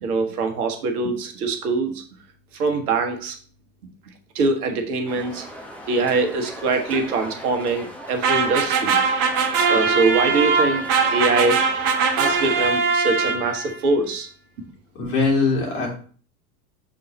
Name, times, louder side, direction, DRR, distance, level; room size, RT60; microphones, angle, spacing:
voice 1, 0.0-1.9 2.6-3.3 4.3-5.4 5.9-9.0 9.7-10.8 11.1-11.6 12.1-14.3, right 3 dB, 65° right, 5 dB, 1.3 m, -23 dB
sound 1, 5.1-12.6, equal, 5° left, 1.0 m, -38 dB
sound 2, 8.2-13.8, right 5 dB, 40° right, 1.0 m, -21 dB
voice 2, 14.9-16.1, left 4 dB, 55° left, -2 dB, 3.1 m, -22 dB
6.6 x 4.0 x 4.1 m, 0.43 s
figure-of-eight pair, 85°, 48 cm